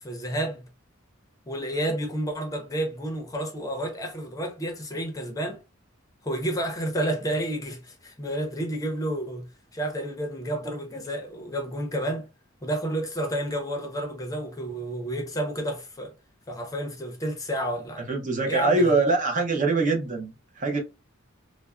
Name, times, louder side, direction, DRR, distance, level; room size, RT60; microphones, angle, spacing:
voice 1, 0.0-0.7 1.5-5.6 6.2-9.5 9.7-12.3 12.6-16.1 16.5-18.1 18.4-19.0, right 1 dB, 15° left, 0.6 m, -30 dB
voice 2, 18.1-20.8, right 3 dB, 40° right, 0.6 m, -23 dB
3.3 x 2.0 x 2.3 m
head